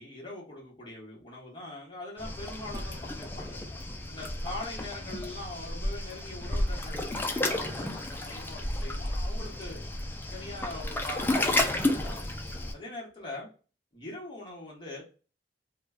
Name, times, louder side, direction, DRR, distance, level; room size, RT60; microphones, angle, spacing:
voice 1, 0.0-3.6 4.1-9.8 10.3-12.2 12.7-13.5 13.9-15.0, left 2 dB, 25° left, -4 dB, 1.1 m, -42 dB
Waves surf, 2.2-12.7, left 1 dB, 10° left, 0.3 m, -32 dB
3.0 x 2.1 x 2.3 m, 0.35 s
head